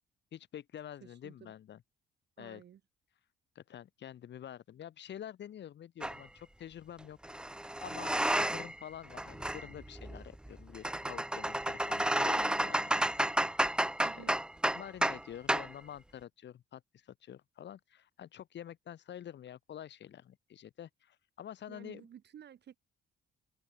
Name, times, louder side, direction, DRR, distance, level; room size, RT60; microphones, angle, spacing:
voice 1, 0.3-1.8 2.4-2.6 3.6-7.2 7.8-13.8 14.1-14.2 14.8-22.1, left 10 dB, 65° left, 1.9 m, -48 dB
voice 2, 1.0-1.5 2.4-2.8 14.0-14.3 21.7-22.8, right 9 dB, 60° right, 1.9 m, -53 dB
sound 1, 6.0-6.2 7.2-8.8 9.1-15.2 15.5-15.7, right 1 dB, 5° right, 0.6 m, -32 dB
cardioid pair, 90°, 20 cm